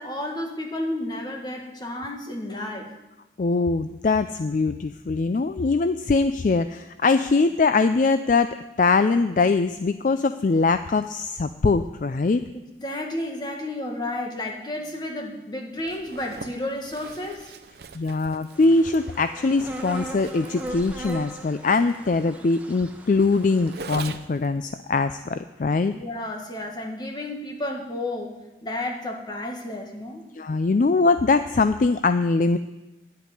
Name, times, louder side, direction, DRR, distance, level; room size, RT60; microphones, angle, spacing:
voice 1, 0.0-2.9 12.8-17.5 25.9-28.3 28.6-30.3, left 1 dB, 25° left, 1 dB, 1.8 m, -32 dB
voice 2, 3.4-8.5 8.8-12.4 17.9-25.9 30.4-32.6, left 3 dB, 45° left, 11 dB, 0.4 m, -22 dB
Zipper (clothing), 15.8-24.5, right 4 dB, 65° right, 0.8 m, -42 dB
sound 1, 18.5-23.8, right 1 dB, 10° right, 1.1 m, -39 dB
10.5 x 8.2 x 9.6 m, 1.0 s
head